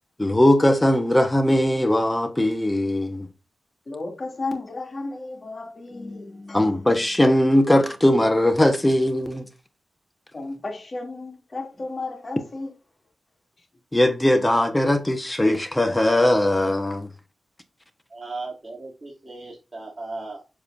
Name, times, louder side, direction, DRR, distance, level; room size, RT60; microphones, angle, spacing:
voice 1, 0.2-3.3 6.5-9.5 13.9-17.1, left 1 dB, 15° left, 1.5 m, -20 dB
voice 2, 3.9-6.9 10.3-12.7, left 3 dB, 45° left, 3.1 m, -33 dB
voice 3, 18.1-20.4, right 3 dB, 30° right, 3.0 m, -36 dB
7.8 x 6.9 x 2.8 m
cardioid pair, 60°, 0 cm